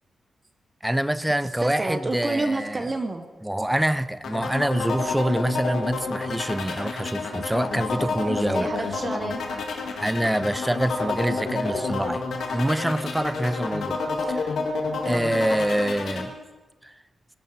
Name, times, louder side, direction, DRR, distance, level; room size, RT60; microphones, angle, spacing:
voice 1, 0.8-2.9 3.4-8.7 10.0-12.3 12.5-14.0 14.3-14.5 15.1-16.3 16.8-16.9, right 1 dB, 5° right, 14 dB, 0.5 m, -26 dB
voice 2, 1.6-3.3 8.5-9.4 15.0-15.3, right 2 dB, 25° right, 7 dB, 1.0 m, -29 dB
sound 1, 4.2-16.3, left 3 dB, 80° left, 2.0 m, -29 dB
20.0 x 13.0 x 4.2 m, 1.2 s
wide cardioid pair, 170°, 0 cm